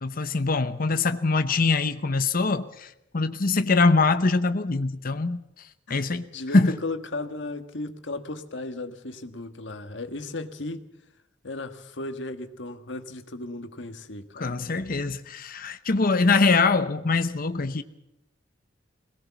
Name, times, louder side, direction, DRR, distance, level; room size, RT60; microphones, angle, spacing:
voice 1, 0.0-5.4 5.9-6.3 6.5-6.7 14.4-17.8, left 3 dB, 50° left, 0.9 m, -23 dB
voice 2, 5.9-10.8 11.4-14.5, left 2 dB, 70° left, 1.6 m, -35 dB
22.0 x 18.5 x 7.1 m
head